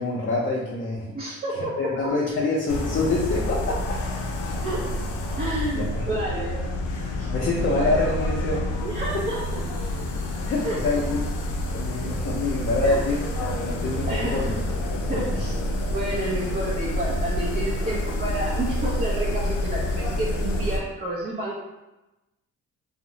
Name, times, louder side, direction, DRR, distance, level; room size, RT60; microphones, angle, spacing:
voice 1, 0.0-4.0 4.4-4.5 5.7-6.1 7.3-8.6 9.1-9.2 10.1-14.6 14.9-15.4, left 3 dB, 40° left, -5 dB, 0.5 m, -27 dB
voice 2, 1.1-1.8 4.6-4.9 5.4-6.8 7.1-7.3 7.8-8.0 8.8-9.6 10.6-10.8 12.8-13.0 14.1-14.4 15.1-15.6 15.9-21.6, right 1 dB, 30° right, -5 dB, 0.5 m, -30 dB
sound 1, 2.7-20.8, left 1 dB, 90° left, 0.5 m, -28 dB
2.7 x 2.0 x 2.6 m, 1.0 s
cardioid pair, 90°, 30 cm